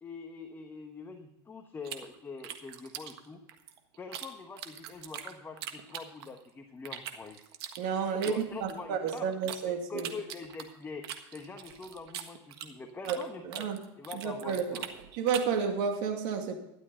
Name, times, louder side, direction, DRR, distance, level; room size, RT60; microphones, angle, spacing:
voice 1, 0.0-3.4 4.0-7.4 8.2-11.1 11.3-13.7 14.0-14.8, left 4 dB, 15° left, 4 dB, 1.2 m, -44 dB
sound 1, 1.8-4.3 4.6-6.5 6.8-9.6 10.0-13.3 13.5-15.6, right 10 dB, 80° right, 1.5 m, -42 dB
voice 2, 7.8-10.1 13.1-13.2 13.4-13.8 14.2-14.8 15.1-16.6, right 6 dB, 65° right, 4 dB, 2.4 m, -31 dB
13.0 x 11.5 x 3.8 m, 0.88 s
supercardioid pair, 135°, 13 cm